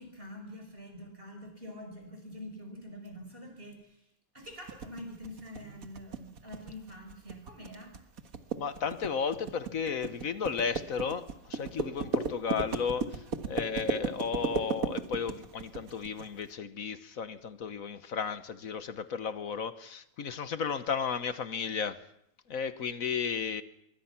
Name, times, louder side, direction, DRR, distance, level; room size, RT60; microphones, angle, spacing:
voice 1, 0.0-4.0 4.3-7.9, left 1 dB, 40° right, 4 dB, 6.1 m, -46 dB
sound 1, 4.7-16.3, right 5 dB, 70° right, 2.0 m, -35 dB
voice 2, 8.6-22.0 22.5-23.6, left 6 dB, 70° left, 12 dB, 1.5 m, -34 dB
25.0 x 23.5 x 5.9 m, 0.76 s
omnidirectional pair, 1.5 m